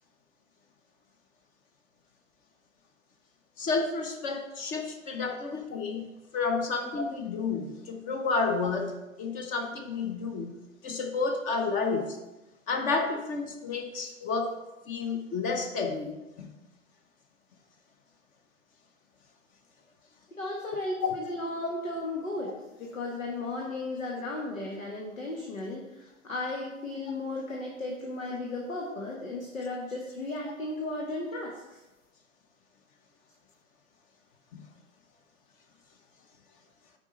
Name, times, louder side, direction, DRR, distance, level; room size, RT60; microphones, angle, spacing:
voice 1, 3.6-6.1 6.3-10.6 10.8-12.2 12.7-14.6 14.9-16.5 21.0-21.2 34.5-34.7, left 4 dB, 20° left, 5 dB, 0.8 m, -31 dB
voice 2, 20.4-22.5 22.8-31.8, left 2 dB, 80° left, -1 dB, 1.6 m, -35 dB
9.3 x 5.1 x 4.0 m, 1.0 s
figure-of-eight pair, 120°, 40 cm